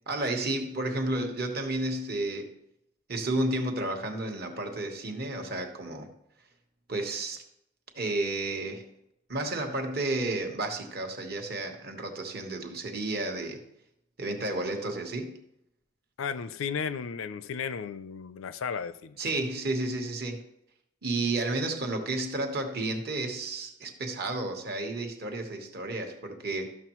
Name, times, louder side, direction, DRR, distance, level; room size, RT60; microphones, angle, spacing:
voice 1, 0.1-2.5 3.1-6.1 6.9-7.4 7.9-8.9 9.3-13.6 14.2-15.4 19.2-20.5 21.0-26.7, right 2 dB, 50° right, 1.1 m, -32 dB
voice 2, 16.2-19.2, left 6 dB, 75° left, 0.4 m, -34 dB
13.0 x 6.2 x 3.0 m
head